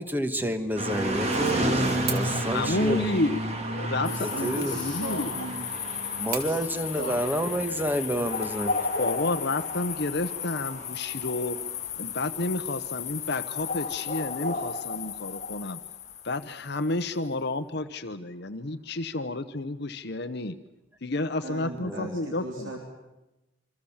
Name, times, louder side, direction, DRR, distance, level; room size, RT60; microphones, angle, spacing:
voice 1, 0.0-3.1 4.4-4.8 6.2-8.8 21.8-22.1, equal, 10° right, 9 dB, 1.7 m, -29 dB
sound 1, 0.8-14.8, right 1 dB, 35° right, 3.4 m, -33 dB
sound 2, 2.0-9.1, right 8 dB, 55° right, 3.1 m, -41 dB
voice 2, 2.5-5.3 9.0-11.6 12.0-15.8 16.2-20.6 21.0-22.7, left 2 dB, 55° left, 10 dB, 1.0 m, -30 dB
sound 3, 4.0-16.9, left 7 dB, 35° left, 1.3 m, -34 dB
voice 3, 4.0-5.7 6.4-6.6 7.0-7.2 21.4-22.9, right 1 dB, 80° right, 1 dB, 3.9 m, -37 dB
28.0 x 25.5 x 7.3 m, 0.99 s
head